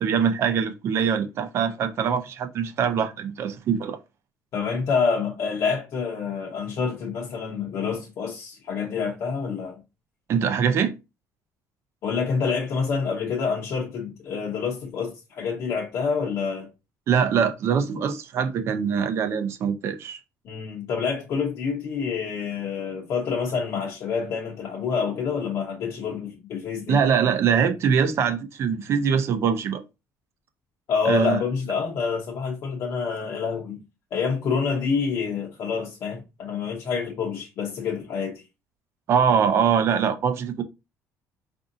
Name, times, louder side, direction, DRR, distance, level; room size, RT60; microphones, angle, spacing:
voice 1, 0.0-4.0 10.3-10.9 17.1-20.2 26.9-29.8 31.0-31.4 39.1-40.6, right 7 dB, 45° right, 0.5 m, -23 dB
voice 2, 4.5-9.8 12.0-16.7 20.4-27.0 30.9-33.8 34.1-38.4, left 5 dB, 50° left, 0.7 m, -27 dB
4.8 x 2.6 x 2.6 m
cardioid pair, 160°, 6 cm